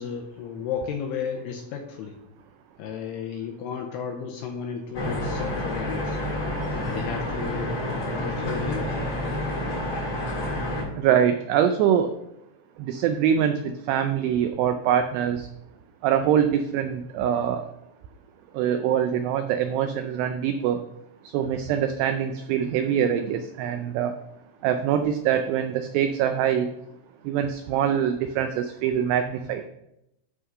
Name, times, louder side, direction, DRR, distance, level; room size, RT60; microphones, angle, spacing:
voice 1, 0.0-2.2 2.8-6.2 6.7-9.0, left 7 dB, 85° left, 2 dB, 2.4 m, -33 dB
sound 1, 4.9-10.8, left 1 dB, 40° left, 2.8 m, -29 dB
voice 2, 11.0-12.1 12.8-13.6 13.9-15.4 16.0-17.6 18.5-20.8 21.3-24.1 24.6-26.7 27.3-29.6, right 9 dB, 90° right, 7 dB, 2.4 m, -24 dB
11.5 x 3.8 x 5.4 m, 0.83 s
omnidirectional pair, 5.4 m